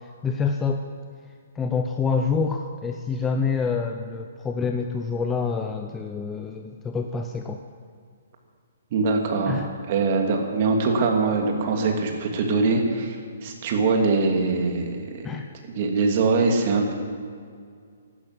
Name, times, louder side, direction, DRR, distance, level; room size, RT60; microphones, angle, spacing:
voice 1, 0.2-0.8 1.6-7.6 9.5-9.7 15.2-15.5, left 5 dB, 10° left, 4 dB, 0.7 m, -27 dB
voice 2, 8.9-9.6 9.9-15.3 15.7-16.9, right 3 dB, 40° right, 2 dB, 2.7 m, -23 dB
14.5 x 12.5 x 7.8 m, 2.2 s
hypercardioid pair, 155°, 0 cm